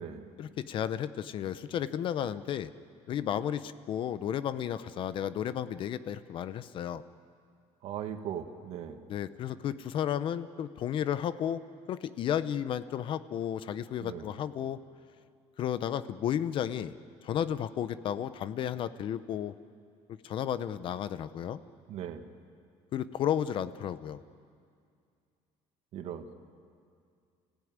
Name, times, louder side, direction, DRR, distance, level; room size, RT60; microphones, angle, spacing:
voice 1, 0.4-2.7 3.1-7.0 9.1-11.6 11.9-14.8 15.6-16.9 17.2-19.5 20.2-21.6 22.9-24.2, left 9 dB, 45° left, 14 dB, 0.7 m, -33 dB
voice 2, 7.8-9.0 14.0-14.3 21.9-22.2 25.9-26.3, right 9 dB, 60° right, 7 dB, 1.7 m, -38 dB
29.0 x 16.0 x 9.6 m, 2.3 s
cardioid pair, 170°, 12 cm